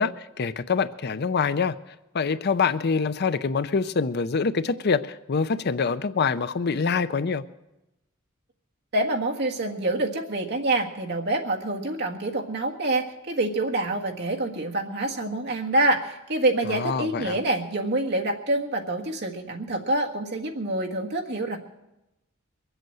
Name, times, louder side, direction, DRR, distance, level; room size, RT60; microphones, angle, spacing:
voice 1, 0.0-1.8 2.1-7.4 16.6-17.4, left 5 dB, 55° left, 13 dB, 0.6 m, -25 dB
voice 2, 8.9-21.6, right 2 dB, 55° right, 1 dB, 1.6 m, -26 dB
22.5 x 8.0 x 7.7 m, 0.95 s
head